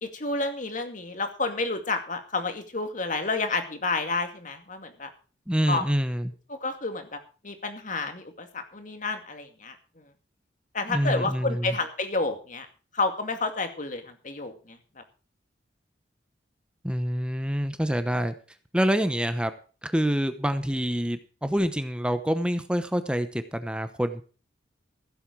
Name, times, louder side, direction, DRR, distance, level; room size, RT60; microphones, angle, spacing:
voice 1, 0.0-5.1 5.7-5.8 6.5-7.2 7.4-9.8 10.7-12.7 12.9-15.0, left 3 dB, 45° left, 7 dB, 2.3 m, -30 dB
voice 2, 5.5-6.3 10.9-11.8 16.8-18.3 18.7-19.5 19.8-24.2, equal, 5° right, 10 dB, 0.8 m, -26 dB
15.5 x 8.0 x 6.1 m, 0.37 s
head